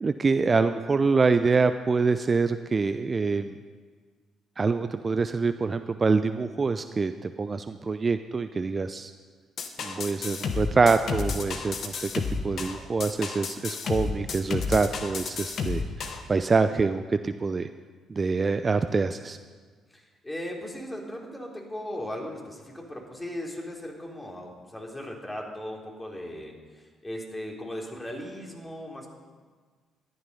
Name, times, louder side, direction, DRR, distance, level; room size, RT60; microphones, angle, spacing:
voice 1, 0.0-3.6 4.6-9.1 9.8-12.1 12.4-15.8 16.3-17.7 18.1-19.4, right 4 dB, 35° right, 10 dB, 0.5 m, -25 dB
sound 1, 9.6-16.2, left 5 dB, 55° left, 1.3 m, -31 dB
voice 2, 19.9-29.1, left 1 dB, 15° left, -1 dB, 3.6 m, -38 dB
12.5 x 11.0 x 5.5 m, 1.5 s
hypercardioid pair, 45°, 0 cm